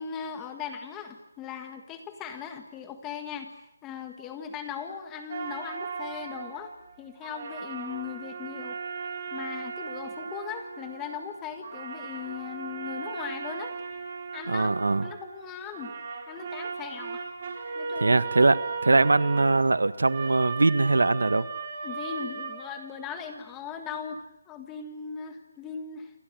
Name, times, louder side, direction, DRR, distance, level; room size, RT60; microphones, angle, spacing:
voice 1, 0.0-3.5 3.8-6.7 7.0-8.8 9.3-13.8 14.3-14.7 15.0-15.9 16.3-17.2 17.8-18.2 21.8-26.1, left 7 dB, 10° left, 7 dB, 1.7 m, -38 dB
sound 1, 5.3-7.0 7.2-11.4 11.6-15.5 15.7-23.3, right 5 dB, 25° right, 4.5 m, -37 dB
voice 2, 14.5-15.1 18.0-21.5, right 3 dB, 90° right, 14 dB, 1.6 m, -22 dB
29.5 x 24.0 x 7.8 m, 0.78 s
hypercardioid pair, 175°, 0 cm